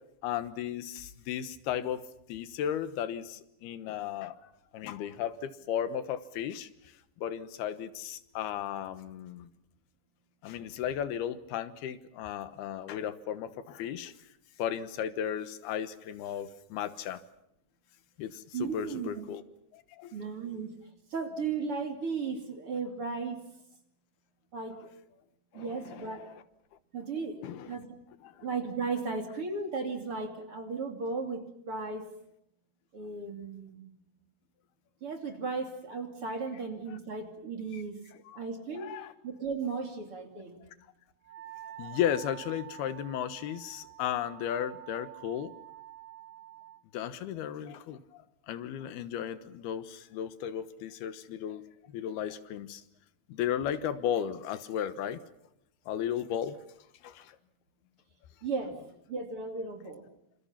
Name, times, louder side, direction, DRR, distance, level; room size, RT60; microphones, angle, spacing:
voice 1, 0.2-2.0 2.3-9.5 10.4-14.1 14.6-17.2 18.2-19.4 19.7-20.1 25.5-26.3 27.4-27.8 28.2-28.4 36.9-37.0 37.7-37.8 38.3-38.4 38.8-39.1 41.8-45.5 46.9-51.6 51.9-52.8 53.3-55.2 55.9-56.6 57.0-57.4, left 9 dB, 80° left, 12 dB, 3.2 m, -35 dB
voice 2, 18.5-19.2 20.1-20.7 21.1-23.4 24.5-24.9 25.5-26.3 26.9-27.9 28.4-32.1 32.9-33.9 35.0-37.9 38.4-38.9 39.2-40.6 58.4-58.8 59.1-60.0, right 4 dB, 40° right, 4 dB, 3.3 m, -35 dB
Wind instrument woodwind instrument, 41.2-46.8, right 14 dB, 80° right, 3.9 m, -48 dB
27.5 x 27.5 x 5.8 m, 0.79 s
omnidirectional pair, 4.5 m